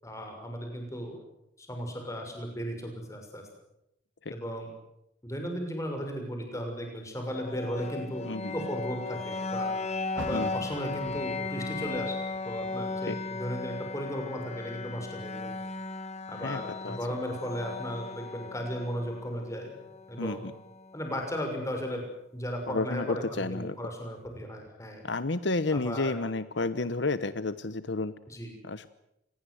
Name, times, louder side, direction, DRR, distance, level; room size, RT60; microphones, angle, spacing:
voice 1, 0.0-1.2 1.6-3.4 4.3-4.7 5.2-8.3 8.5-9.7 10.1-12.2 12.4-15.5 16.3-19.7 20.1-20.4 20.9-22.0 22.3-25.0 25.7-26.2 28.3-28.5, equal, 15° left, 3 dB, 6.5 m, -35 dB
sound 1, 7.3-21.2, left 3 dB, 35° left, 2.1 m, -37 dB
Car, 10.1-13.4 13.8-15.2 15.6-15.7 16.3-16.4, right 1 dB, 80° right, 3.1 m, -47 dB
voice 2, 16.4-17.0 20.2-20.5 22.7-23.8 25.0-28.1 28.6-28.9, left 3 dB, 70° left, 14 dB, 1.0 m, -31 dB
26.5 x 20.0 x 8.0 m, 0.84 s
head